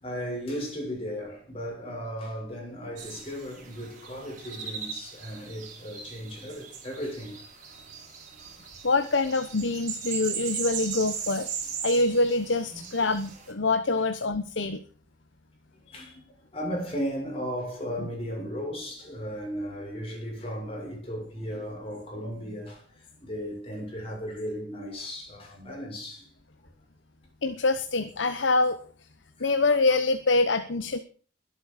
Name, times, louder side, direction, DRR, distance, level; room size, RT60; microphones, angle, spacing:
voice 1, 0.0-7.4 12.7-12.9 15.9-16.3 16.5-22.8 23.2-26.3 29.4-29.5, equal, 30° left, 7.1 m, -35 dB
sound 1, 3.0-13.5, right 6 dB, 40° right, 4.8 m, -38 dB
voice 2, 8.8-11.5 11.8-14.8 15.9-16.0 27.4-28.8 29.4-31.0, left 3 dB, 75° left, 1.0 m, -25 dB
22.0 x 8.6 x 5.1 m
head